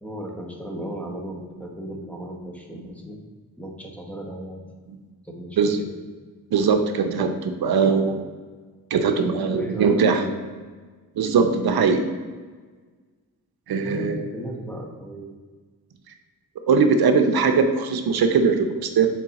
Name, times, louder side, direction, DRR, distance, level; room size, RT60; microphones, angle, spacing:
voice 1, 0.0-3.2 3.6-4.6 5.2-5.9 9.1-10.4 13.8-15.3, right 1 dB, 5° left, 0 dB, 1.0 m, -35 dB
voice 2, 6.5-8.3 8.9-10.2 11.2-12.0 13.7-14.2 16.7-19.1, right 5 dB, 75° right, 6 dB, 0.7 m, -20 dB
7.3 x 3.9 x 4.1 m, 1.4 s
wide cardioid pair, 115°, 37 cm